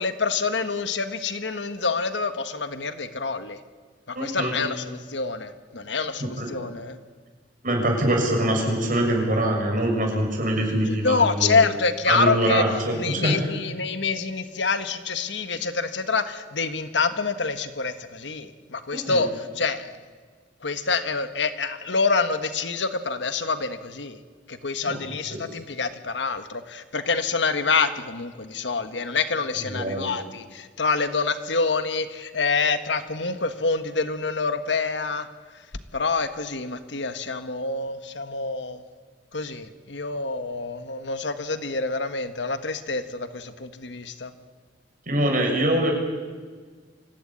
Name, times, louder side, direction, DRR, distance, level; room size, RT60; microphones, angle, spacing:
voice 1, 0.0-3.6 4.1-7.0 10.9-12.6 12.9-20.0 20.6-24.2 24.5-35.3 35.9-38.8 39.3-44.3, left 4 dB, 75° left, 10 dB, 1.5 m, -26 dB
voice 2, 4.1-4.5 6.2-6.5 7.6-11.6 12.1-13.4 18.9-19.2 24.9-25.0 25.3-25.4 29.6-30.1 45.1-45.9, right 1 dB, 50° right, 1 dB, 6.5 m, -24 dB
25.0 x 15.5 x 10.0 m, 1.5 s
head